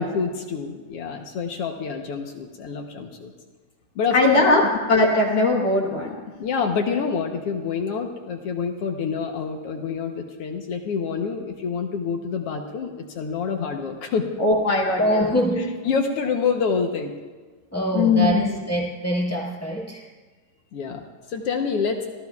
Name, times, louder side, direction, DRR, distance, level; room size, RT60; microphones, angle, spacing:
voice 1, 0.0-3.3 3.9-4.7 6.4-14.3 15.8-17.1 20.7-22.1, left 5 dB, 70° left, 3 dB, 1.4 m, -27 dB
voice 2, 4.1-4.6 4.9-6.2 14.4-15.3 17.9-18.5, left 2 dB, 55° left, -2 dB, 2.0 m, -19 dB
voice 3, 15.0-15.7 17.7-20.0, equal, 20° left, -4 dB, 0.4 m, -24 dB
30.0 x 14.0 x 2.4 m, 1.4 s
omnidirectional pair, 3.8 m